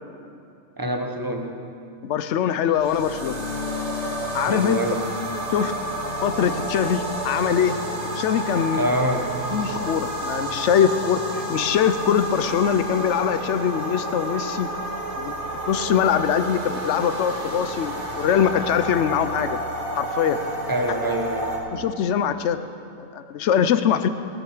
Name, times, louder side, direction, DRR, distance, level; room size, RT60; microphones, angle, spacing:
voice 1, 0.8-1.6 4.5-5.1 8.7-9.3 20.7-21.5, right 1 dB, 20° right, 3 dB, 0.8 m, -26 dB
voice 2, 2.0-3.4 4.3-4.8 5.5-5.7 6.2-7.8 8.2-8.9 9.5-14.7 15.2-15.3 15.7-19.6 20.0-20.4 21.7-22.6 23.1-24.1, left 8 dB, 65° left, 11 dB, 0.9 m, -22 dB
sound 1, 2.7-21.6, right 1 dB, 55° right, 1.9 m, -30 dB
18.5 x 8.9 x 4.9 m, 2.5 s
omnidirectional pair, 1.4 m